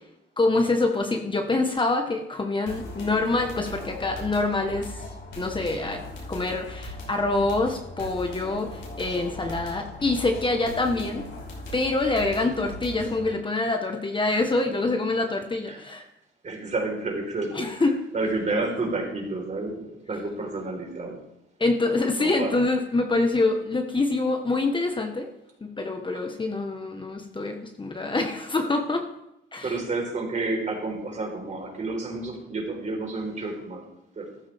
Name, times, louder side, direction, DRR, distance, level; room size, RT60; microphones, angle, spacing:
voice 1, 0.4-5.0 5.4-6.0 6.3-11.3 11.7-16.0 17.5-18.0 21.6-25.3 25.6-29.0 29.5-29.8, left 2 dB, 25° left, 4 dB, 1.5 m, -25 dB
sound 1, 2.7-13.3, left 2 dB, 70° left, 5.4 m, -39 dB
voice 2, 16.4-17.9 18.1-21.2 22.2-22.5 29.6-33.8 34.2-34.3, right 2 dB, 40° right, 0 dB, 4.6 m, -30 dB
14.5 x 12.0 x 3.7 m, 0.85 s
cardioid pair, 90°, 20 cm